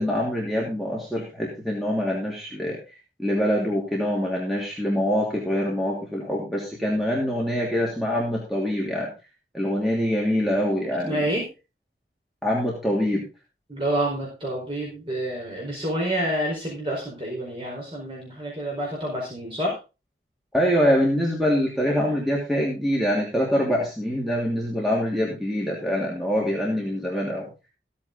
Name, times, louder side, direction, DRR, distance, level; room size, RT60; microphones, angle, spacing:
voice 1, 0.0-9.1 9.5-11.3 12.4-13.2 20.5-27.7, equal, ahead, -4 dB, 2.8 m, -25 dB
voice 2, 11.1-11.4 13.7-19.7, right 1 dB, 30° right, -3 dB, 4.7 m, -28 dB
15.5 x 8.6 x 4.0 m, 0.31 s
head